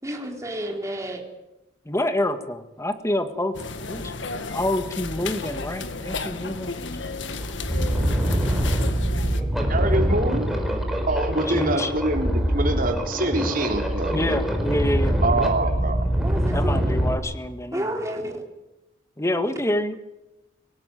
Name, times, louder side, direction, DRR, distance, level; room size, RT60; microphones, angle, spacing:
voice 1, 0.0-1.3 16.2-16.8 17.7-18.4, right 1 dB, 15° right, 1 dB, 3.9 m, -31 dB
voice 2, 1.9-3.5 3.9-4.0 4.3-6.7 9.4-9.7 11.5-11.9 14.1-15.5 16.5-17.8 19.2-20.0, left 1 dB, 15° left, 9 dB, 1.8 m, -27 dB
sound 1, 3.5-9.4, left 3 dB, 75° left, 1.8 m, -33 dB
sound 2, 7.4-17.1, equal, ahead, 4.5 m, -24 dB
voice 3, 9.7-10.5 11.1-14.3 15.2-16.1, right 2 dB, 50° right, 3 dB, 4.1 m, -25 dB
25.0 x 18.0 x 9.2 m, 0.96 s
head